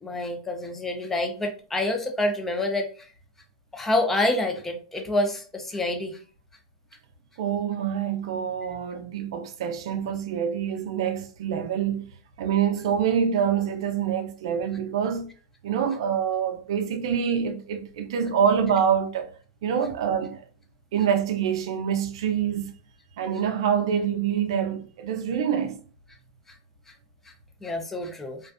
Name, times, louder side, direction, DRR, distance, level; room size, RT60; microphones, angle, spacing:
voice 1, 0.0-2.9 3.7-6.2 27.6-28.4, left 1 dB, 10° left, 0.5 m, -27 dB
voice 2, 7.4-12.1 12.4-15.3 15.6-19.3 19.6-20.4 20.9-22.7 23.2-25.8, right 8 dB, 65° right, 0.4 m, -26 dB
2.4 x 2.1 x 2.4 m
hypercardioid pair, 130°, 3 cm